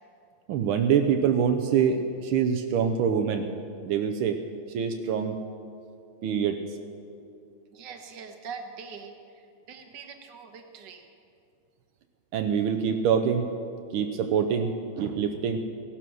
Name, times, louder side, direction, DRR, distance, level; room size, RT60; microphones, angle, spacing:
voice 1, 0.5-3.5 3.8-4.4 4.7-5.5 6.2-6.6 12.3-13.5 13.9-15.6, right 7 dB, 80° right, 5 dB, 1.6 m, -25 dB
voice 2, 7.7-11.1, right 5 dB, 60° right, 5 dB, 1.8 m, -43 dB
16.0 x 11.5 x 6.2 m, 2.5 s
omnidirectional pair, 2.3 m